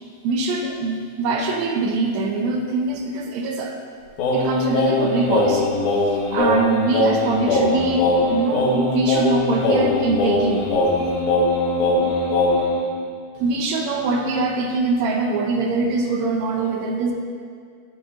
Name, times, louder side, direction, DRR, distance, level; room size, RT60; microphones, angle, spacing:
voice 1, 0.2-3.7 4.3-5.7 6.3-10.7 13.4-17.1, right 3 dB, 80° right, 2 dB, 1.7 m, -23 dB
Singing, 4.2-12.8, left 2 dB, 85° left, 2.4 m, -20 dB
7.3 x 6.2 x 2.5 m, 2.1 s
omnidirectional pair, 3.6 m